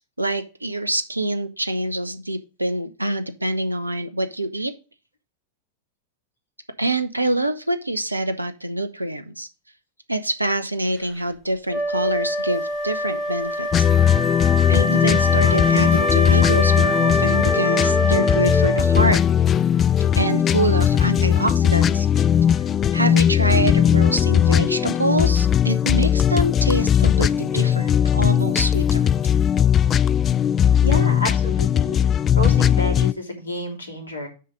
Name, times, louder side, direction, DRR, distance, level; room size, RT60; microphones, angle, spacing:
voice 1, 0.2-4.7 6.8-9.5 10.1-13.9 14.7-19.2 20.1-22.1 22.9-29.1, right 1 dB, 85° right, 9 dB, 0.8 m, -25 dB
Wind instrument woodwind instrument, 11.7-19.3, left 1 dB, 5° right, 4.0 m, -24 dB
sound 1, 13.7-33.1, left 9 dB, 25° left, 0.4 m, -18 dB
voice 2, 30.8-32.0 32.3-34.3, equal, 75° left, 1 dB, 3.0 m, -29 dB
6.5 x 5.6 x 5.2 m, 0.32 s
figure-of-eight pair, 90°, 0 cm